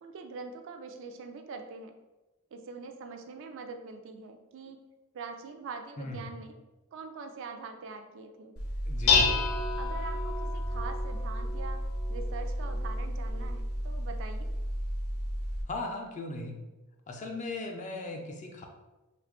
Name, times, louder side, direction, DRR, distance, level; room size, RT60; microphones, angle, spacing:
voice 1, 0.0-1.9 2.5-4.8 5.1-6.6 6.9-8.6 9.3-14.5, right 4 dB, 60° right, 6 dB, 0.3 m, -43 dB
Dishes pots and pans, 8.6-15.6, left 2 dB, 85° left, 0.7 m, -30 dB
voice 2, 8.9-9.5 15.7-16.6 17.1-18.7, left 2 dB, 35° left, 3 dB, 0.4 m, -38 dB
2.9 x 2.4 x 3.5 m, 1.1 s
head